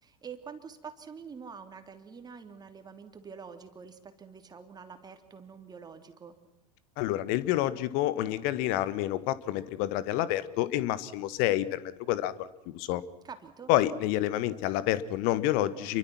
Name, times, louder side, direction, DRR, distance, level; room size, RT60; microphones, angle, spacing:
voice 1, 0.0-6.3 13.2-13.7, right 6 dB, 20° right, 8 dB, 3.0 m, -46 dB
voice 2, 7.0-13.0 13.7-16.0, left 14 dB, 45° left, 17 dB, 1.5 m, -28 dB
29.0 x 23.5 x 6.1 m, 0.95 s
figure-of-eight pair, 80°, 21 cm